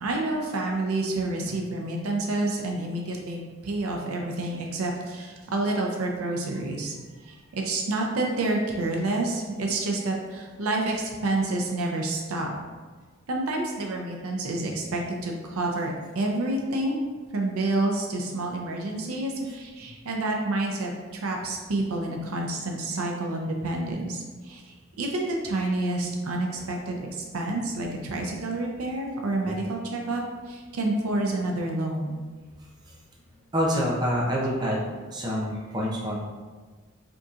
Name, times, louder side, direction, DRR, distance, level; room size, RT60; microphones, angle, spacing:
voice 1, 0.0-6.9 7.2-12.5 13.3-17.0 17.3-27.1 27.3-32.2, right 2 dB, 85° right, 0 dB, 0.5 m, -29 dB
voice 2, 33.5-34.8 35.1-36.2, equal, 20° right, -4 dB, 0.5 m, -26 dB
5.1 x 2.8 x 2.4 m, 1.4 s
head